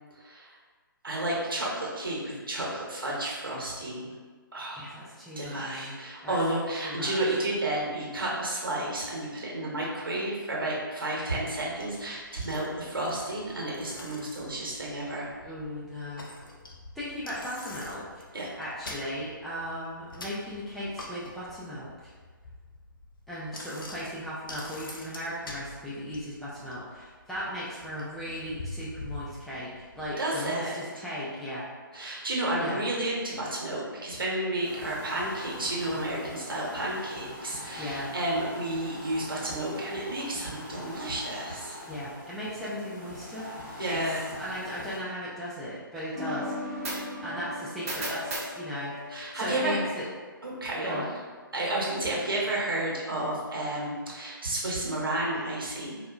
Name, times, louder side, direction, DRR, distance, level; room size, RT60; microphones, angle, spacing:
voice 1, 0.2-0.6 1.0-4.1 4.5-4.9 5.4-15.3 18.3-18.5 30.2-31.0 31.9-41.8 43.8-44.3 49.1-49.8 50.4-51.0 51.5-56.0, right 1 dB, 75° right, -4 dB, 1.1 m, -31 dB
voice 2, 4.7-6.0 6.2-6.4 6.8-7.4 15.4-16.3 17.0-18.2 18.6-22.1 23.3-31.6 31.9-32.3 32.6-32.8 37.8-38.1 41.9-43.5 43.8-44.0 44.4-50.1 50.8-51.1, equal, ahead, -10 dB, 0.4 m, -37 dB
Bicycle, 11.3-30.1, left 2 dB, 70° left, 0.6 m, -46 dB
sound 1, 34.6-45.0, left 1 dB, 35° left, 1.1 m, -43 dB
sound 2, 46.1-49.7, equal, 40° right, 1.0 m, -36 dB
4.0 x 2.6 x 2.3 m, 1.4 s
figure-of-eight pair, 140°, 12 cm